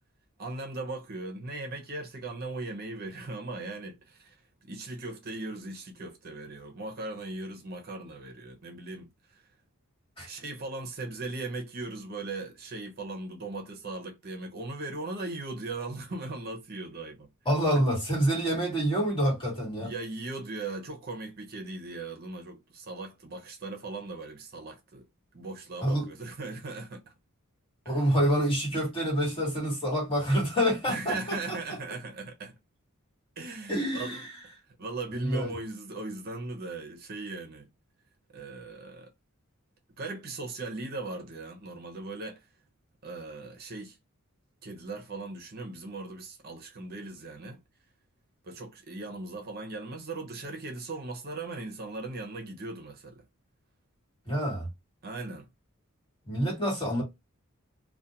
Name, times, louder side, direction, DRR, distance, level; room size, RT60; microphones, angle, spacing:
voice 1, 0.4-4.4 4.6-9.4 10.3-17.3 17.7-17.9 19.8-25.1 25.3-27.1 27.8-28.1 30.9-32.5 33.4-37.7 38.3-39.1 40.0-42.5 43.0-44.0 44.6-47.6 48.4-53.2 55.0-55.5, right 2 dB, 45° right, 0.6 m, -38 dB
voice 2, 17.4-19.9 25.8-26.1 27.8-31.6 33.7-34.3 35.1-35.6 54.3-54.7 56.3-57.0, equal, 25° left, 1.3 m, -27 dB
2.5 x 2.1 x 2.7 m
head